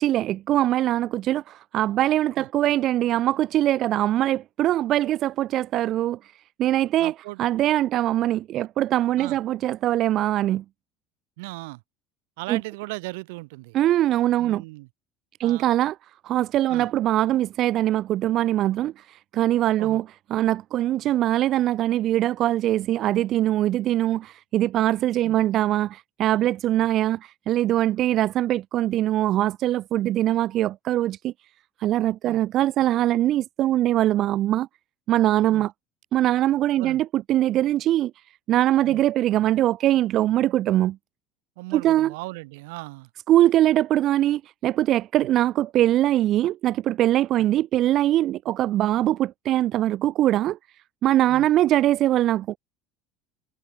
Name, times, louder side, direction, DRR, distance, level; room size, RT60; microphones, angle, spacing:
voice 1, 0.0-6.2 6.6-7.1 7.4-10.6 12.5-12.6 13.7-14.6 15.4-16.0 16.2-20.0 20.3-31.3 31.8-34.7 35.1-35.7 36.1-38.1 38.5-41.0 41.7-42.1 43.3-50.6 51.0-52.6, right 13 dB, 50° right, 1.4 m, -22 dB
voice 2, 7.0-7.4 9.2-9.4 11.4-11.8 12.4-13.8 14.4-14.9 15.4-15.6 16.7-16.9 19.8-20.0 25.2-25.4 32.2-32.4 35.5-35.7 36.8-37.0 38.9-39.0 41.6-43.1 51.3-51.5, right 24 dB, 85° right, 7.0 m, -37 dB
supercardioid pair, 120°, 0 cm